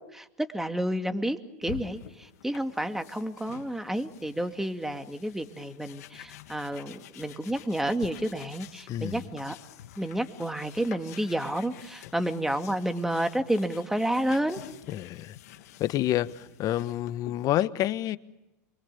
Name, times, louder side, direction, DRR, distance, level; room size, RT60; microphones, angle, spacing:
voice 1, 0.0-9.6 10.0-14.6, right 1 dB, 5° right, 2.4 m, -30 dB
sound 1, 1.6-17.5, left 11 dB, 70° left, 2.0 m, -48 dB
voice 2, 8.9-9.2 14.9-15.4 15.8-18.2, left 13 dB, 45° left, 1.3 m, -28 dB
28.5 x 24.5 x 6.9 m
hypercardioid pair, 95°, 9 cm